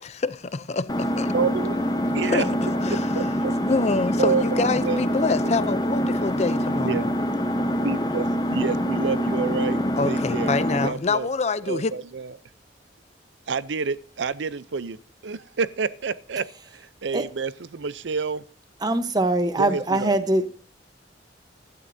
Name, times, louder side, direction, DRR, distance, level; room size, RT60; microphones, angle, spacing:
voice 1, 0.4-1.3 2.2-3.3 3.7-7.1 10.0-11.9, left 4 dB, 35° left, 0.5 m, -26 dB
Engine, 0.9-10.9, equal, 20° left, 0.9 m, -25 dB
voice 2, 1.3-1.8 2.1-2.5 3.1-3.5 4.2-5.0 6.8-7.1 7.8-10.5 10.8-11.3 11.6-12.3 13.5-16.4 16.7-18.4 19.6-20.1, right 5 dB, 80° right, 0.6 m, -28 dB
voice 3, 18.8-20.5, right 2 dB, 20° right, 1.0 m, -22 dB
16.5 x 12.0 x 2.7 m
head